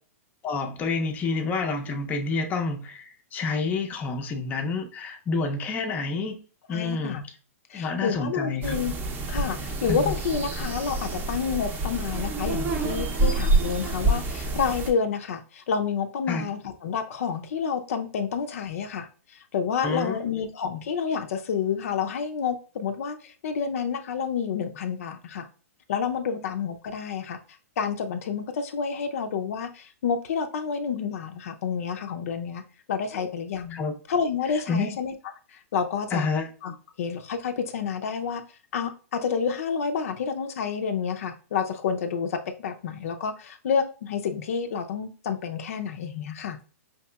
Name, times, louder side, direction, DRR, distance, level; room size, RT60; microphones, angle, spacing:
voice 1, 0.4-6.4 6.7-7.2 7.7-8.8 9.9-10.0 16.3-16.5 19.8-20.2 33.7-34.0 34.7-35.0 36.1-36.5, left 4 dB, 20° left, 0.5 m, -28 dB
voice 2, 6.7-7.2 7.7-8.9 9.3-25.5 25.9-27.4 27.8-32.6 32.9-33.8 34.1-35.1 35.5-36.3 36.6-38.4 38.7-46.6, left 6 dB, 70° left, 0.5 m, -29 dB
sound 1, 8.6-14.9, right 2 dB, 20° right, 0.6 m, -27 dB
5.1 x 2.8 x 2.2 m
hypercardioid pair, 135°, 8 cm